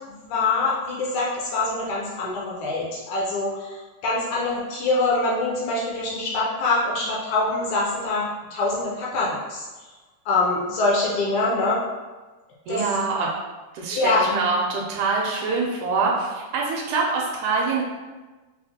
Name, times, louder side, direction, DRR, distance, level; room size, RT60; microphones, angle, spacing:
voice 1, 0.2-8.3 8.5-9.7 10.3-11.8 12.7-12.8 13.9-14.2, left 3 dB, 75° left, -5 dB, 1.9 m, -24 dB
voice 2, 12.7-13.3 13.7-17.8, right 4 dB, 80° right, -1 dB, 1.9 m, -24 dB
5.5 x 2.1 x 2.7 m, 1.2 s
omnidirectional pair, 3.7 m